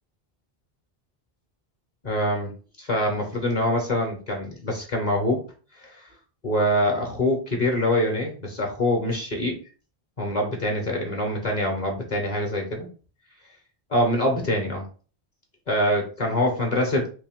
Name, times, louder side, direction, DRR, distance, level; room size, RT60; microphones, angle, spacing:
voice 1, 2.0-2.5 2.8-5.4 5.8-6.1 6.4-9.6 10.2-12.9 13.9-14.8 15.7-17.1, left 1 dB, 45° left, 1 dB, 1.0 m, -24 dB
3.5 x 2.8 x 3.5 m, 0.39 s
omnidirectional pair, 1.0 m